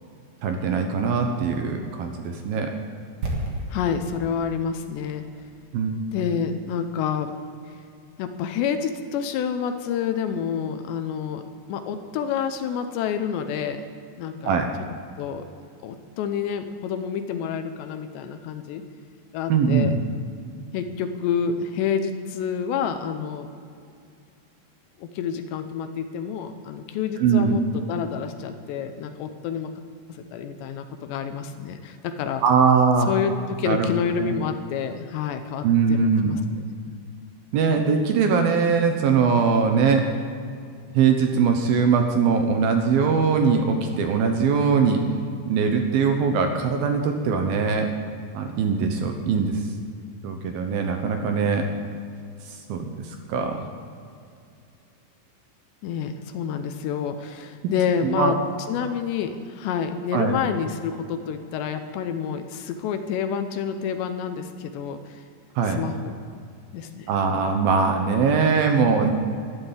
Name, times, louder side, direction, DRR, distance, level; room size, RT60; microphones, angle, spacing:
voice 1, 0.4-2.7 5.7-5.9 14.4-14.7 19.5-19.9 27.2-27.6 32.4-33.1 33.7-33.9 34.2-34.3 35.6-36.4 37.5-40.0 40.9-45.0 45.5-47.9 48.3-49.6 50.2-51.7 52.5-53.7 58.0-58.3 60.1-60.4 65.6-65.8 67.1-69.1, right 5 dB, 75° right, 4 dB, 2.3 m, -21 dB
sound 1, 3.2-7.2 7.4-7.5, right 1 dB, 50° right, 2.6 m, -34 dB
voice 2, 3.7-5.2 6.1-7.3 7.7-7.8 8.2-11.4 11.7-13.8 14.2-14.5 15.2-15.5 15.8-18.8 19.3-19.9 20.7-23.5 25.0-29.8 30.1-32.4 33.1-36.0 36.2-36.4 55.8-58.4 58.7-65.2 65.6-66.1 66.7-67.4, left 7 dB, 80° left, 8 dB, 2.8 m, -28 dB
12.5 x 12.0 x 7.3 m, 2.4 s
omnidirectional pair, 5.3 m